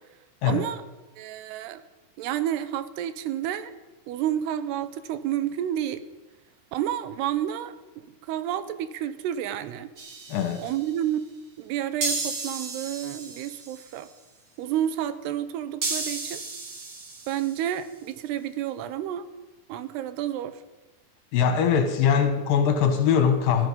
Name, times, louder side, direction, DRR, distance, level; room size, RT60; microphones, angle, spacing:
voice 1, 0.4-0.8 1.2-1.8 2.2-3.7 4.1-6.0 6.7-9.9 10.6-11.2 11.6-14.1 14.6-16.4 17.3-19.3 19.7-20.6, right 11 dB, 85° right, 13 dB, 2.9 m, -30 dB
sound 1, 10.0-10.9 12.0-13.9 15.8-17.7, right 3 dB, 40° right, 1.5 m, -33 dB
voice 2, 10.3-10.6 21.3-23.7, left 7 dB, 70° left, 7 dB, 2.5 m, -22 dB
16.5 x 14.0 x 5.4 m, 1.1 s
omnidirectional pair, 4.6 m